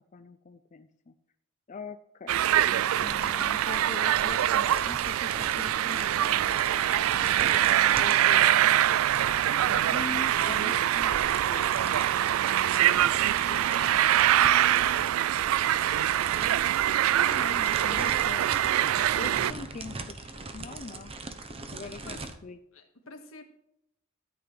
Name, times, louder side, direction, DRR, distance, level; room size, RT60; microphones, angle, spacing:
voice 1, 0.1-1.1 1.7-2.4 2.7-6.9 8.0-9.0 9.5-11.7 13.4-15.1 17.2-18.5 19.2-21.1 21.7-22.6, left 4 dB, 35° left, 7 dB, 0.5 m, -43 dB
sound 1, 2.3-19.5, right 12 dB, 90° right, 0.3 m, -24 dB
sound 2, 2.5-22.4, right 3 dB, 30° right, 0.8 m, -42 dB
voice 2, 19.2-19.7 22.0-22.2 22.7-23.4, left 2 dB, 85° left, 4 dB, 1.7 m, -48 dB
13.5 x 8.3 x 3.3 m, 0.80 s
head